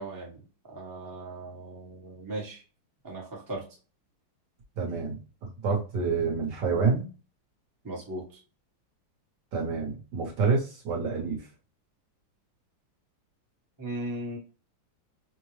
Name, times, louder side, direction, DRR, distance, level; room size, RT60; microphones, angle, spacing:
voice 1, 0.0-2.6 3.0-3.6 7.8-8.2 13.8-14.4, right 1 dB, 15° right, -3 dB, 0.8 m, -37 dB
voice 2, 4.8-7.1 9.5-11.4, right 4 dB, 60° right, -1 dB, 1.5 m, -28 dB
5.4 x 2.1 x 3.1 m, 0.35 s
omnidirectional pair, 2.3 m